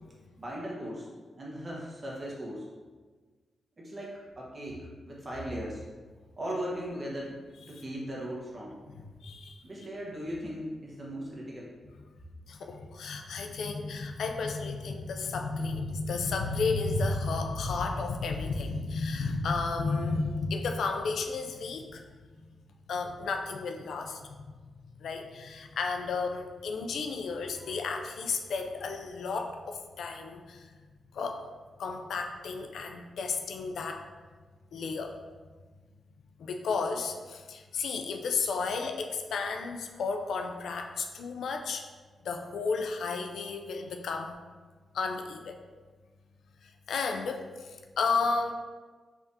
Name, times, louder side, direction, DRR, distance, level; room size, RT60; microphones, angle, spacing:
voice 1, 0.4-1.1 1.4-2.7 3.8-5.8 6.4-7.4 7.7-8.8 9.6-11.7, equal, 35° right, -4 dB, 1.2 m, -38 dB
voice 2, 9.2-9.6 12.5-22.0 22.9-24.5 25.0-30.7 31.1-31.4 31.8-34.0 34.7-35.2 36.4-41.9 42.2-44.4 44.9-45.6 46.6-48.5, left 4 dB, 80° left, 4 dB, 0.3 m, -32 dB
3.5 x 3.5 x 2.7 m, 1.4 s
cardioid pair, 65°, 0 cm